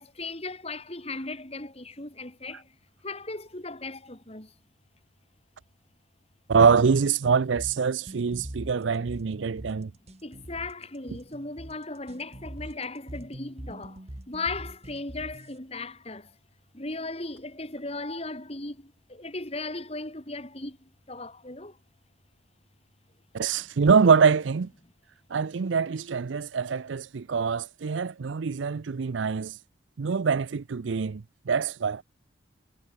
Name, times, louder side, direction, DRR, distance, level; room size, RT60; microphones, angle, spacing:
voice 1, 0.0-2.7 3.0-4.5 10.2-14.0 14.3-16.3 16.7-21.8, left 3 dB, 30° left, 2.8 m, -37 dB
voice 2, 6.5-9.9 23.3-24.7 25.3-29.6 30.0-32.0, right 5 dB, 75° right, 0.5 m, -24 dB
sound 1, 7.6-15.6, right 1 dB, 35° right, 1.5 m, -42 dB
head